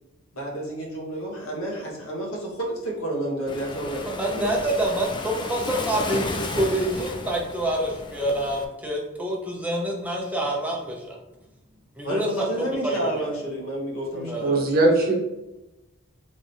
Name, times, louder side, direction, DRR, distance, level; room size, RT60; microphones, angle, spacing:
voice 1, 0.3-4.7 12.0-14.6, right 1 dB, 85° left, -2 dB, 1.3 m, -30 dB
Waves surf, 3.5-8.6, left 3 dB, 20° left, 0.4 m, -33 dB
voice 2, 4.1-11.2 12.0-13.0 14.3-14.6, right 1 dB, 5° right, -1 dB, 0.7 m, -27 dB
voice 3, 14.1-15.1, right 2 dB, 45° right, -1 dB, 1.0 m, -21 dB
3.5 x 3.4 x 4.0 m, 0.96 s
head